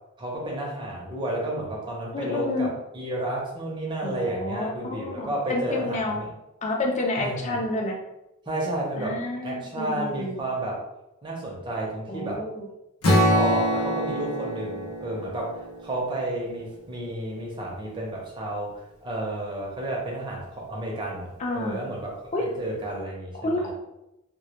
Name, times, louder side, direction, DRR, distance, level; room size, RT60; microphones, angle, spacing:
voice 1, 0.2-6.3 7.2-7.6 8.5-10.8 11.2-12.4 13.3-23.7, right 1 dB, 20° right, -3 dB, 0.6 m, -31 dB
voice 2, 2.1-2.7 4.0-6.2 6.6-8.0 9.0-10.4 12.1-12.7 21.4-21.9 22.3-22.4 23.4-23.7, left 2 dB, 30° left, 0 dB, 0.4 m, -29 dB
Strum, 13.0-17.2, equal, 80° left, 0.7 m, -26 dB
2.1 x 2.1 x 2.8 m, 0.90 s
head